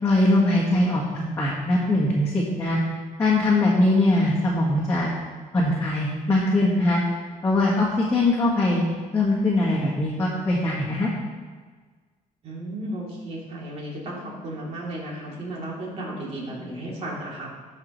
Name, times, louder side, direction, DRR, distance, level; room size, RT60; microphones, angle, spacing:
voice 1, 0.0-2.8 3.2-5.1 5.5-7.0 7.4-8.8 9.1-11.1, left 2 dB, 20° left, -6 dB, 1.5 m, -21 dB
voice 2, 12.4-17.5, right 1 dB, 45° right, -4 dB, 2.9 m, -34 dB
16.0 x 5.8 x 3.1 m, 1.5 s
cardioid pair, 145°, 15 cm